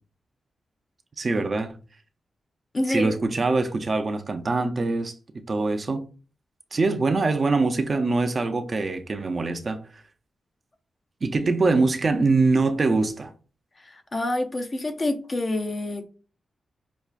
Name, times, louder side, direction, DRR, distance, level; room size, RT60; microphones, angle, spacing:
voice 1, 1.2-1.8 2.9-5.2 5.5-6.1 6.7-10.0 11.2-13.3, right 3 dB, 35° right, 0.4 m, -23 dB
voice 2, 2.7-3.1 13.8-16.1, left 1 dB, 30° left, 0.5 m, -27 dB
5.6 x 2.3 x 2.4 m
wide cardioid pair, 140°, 0 cm